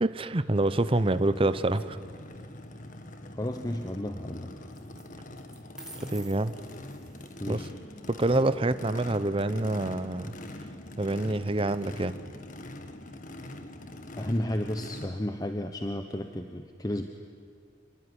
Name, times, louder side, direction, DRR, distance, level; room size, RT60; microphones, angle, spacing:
voice 1, 0.0-2.0 6.1-6.5 7.5-7.6 8.1-10.3 11.0-12.2, right 2 dB, 30° right, 13 dB, 0.7 m, -26 dB
Race car auto racing / Idling / Accelerating revving vroom, 0.6-15.1, left 1 dB, 45° left, 1.7 m, -44 dB
sound 1, 2.3-2.4 4.7-5.0 5.4-7.4, right 2 dB, 5° right, 2.7 m, -49 dB
voice 2, 3.3-4.5 7.4-7.7 14.2-17.1, left 1 dB, 20° left, 6 dB, 1.0 m, -32 dB
26.5 x 22.5 x 9.9 m, 2.1 s
head